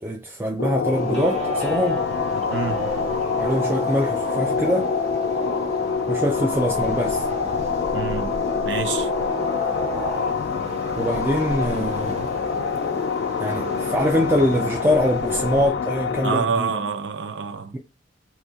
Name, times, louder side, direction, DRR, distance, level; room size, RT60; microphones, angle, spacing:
voice 1, 0.0-2.0 3.4-4.9 6.1-7.3 11.0-12.2 13.4-16.7, equal, 15° right, 0.3 m, -23 dB
sound 1, 0.6-16.4, left 5 dB, 75° left, 0.3 m, -26 dB
Guitar, 0.9-10.3, left 2 dB, 5° left, 1.2 m, -30 dB
Waves surf, 0.9-15.7, right 1 dB, 40° right, 0.8 m, -37 dB
voice 2, 7.9-8.4 8.6-9.1 16.2-17.8, right 5 dB, 85° right, 0.5 m, -27 dB
4.2 x 2.8 x 2.3 m
head